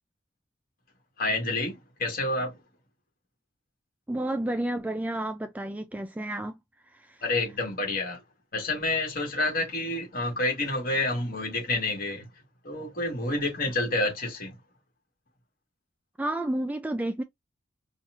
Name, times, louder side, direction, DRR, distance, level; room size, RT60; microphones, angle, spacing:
voice 1, 1.2-2.5 7.2-8.2 8.5-12.3 12.6-14.5, left 2 dB, 50° left, 1.7 m, -28 dB
voice 2, 4.1-6.6 6.9-7.2 16.2-17.2, right 1 dB, 10° right, 0.3 m, -31 dB
4.1 x 2.4 x 2.5 m
head